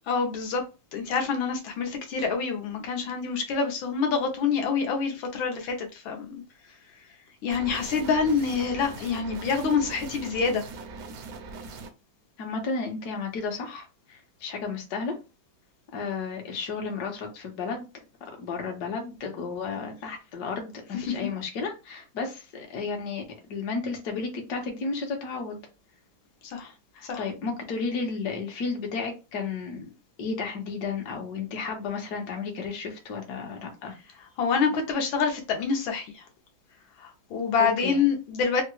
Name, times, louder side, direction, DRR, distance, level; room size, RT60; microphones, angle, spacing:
voice 1, 0.1-0.6 0.9-6.4 7.4-10.6 26.4-26.7 27.0-27.2 34.4-36.2 37.0-38.6, left 5 dB, 85° left, 1.5 m, -26 dB
sound 1, 7.5-11.9, right 4 dB, 75° right, 0.8 m, -41 dB
voice 2, 12.4-15.1 15.9-17.8 18.4-23.2 23.5-25.6 26.9-29.9 30.2-34.0 37.6-38.0, left 4 dB, 60° left, 1.3 m, -33 dB
3.6 x 2.0 x 3.0 m
omnidirectional pair, 2.1 m